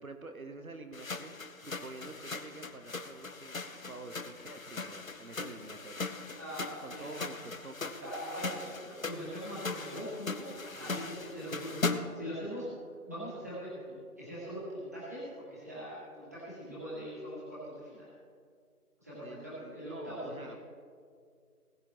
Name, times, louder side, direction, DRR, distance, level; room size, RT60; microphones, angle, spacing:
voice 1, 0.0-6.1 6.8-8.6 10.7-11.0 19.2-20.6, right 2 dB, 65° right, 6 dB, 1.1 m, -47 dB
sound 1, 0.9-12.3, left 3 dB, 60° left, 1.0 m, -39 dB
voice 2, 6.4-7.1 8.0-12.7 13.0-18.1 19.0-20.5, equal, 10° right, -11 dB, 2.1 m, -42 dB
20.0 x 9.6 x 3.1 m, 2.2 s
figure-of-eight pair, 175°, 45 cm